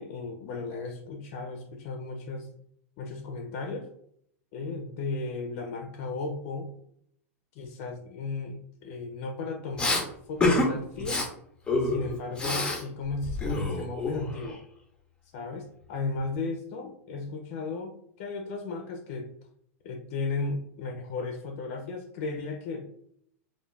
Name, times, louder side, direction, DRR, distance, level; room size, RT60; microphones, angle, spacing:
voice 1, 0.0-2.5 3.0-3.9 4.5-6.7 7.5-11.3 11.8-14.6 15.3-19.3 19.8-22.9, left 3 dB, 55° left, 4 dB, 0.4 m, -35 dB
Respiratory sounds, 9.8-10.0 10.4-10.7 11.0-11.3 11.7-12.8 13.1-14.5, left 2 dB, 10° left, 0.6 m, -27 dB
2.2 x 2.2 x 3.1 m, 0.71 s
hypercardioid pair, 120°, 8 cm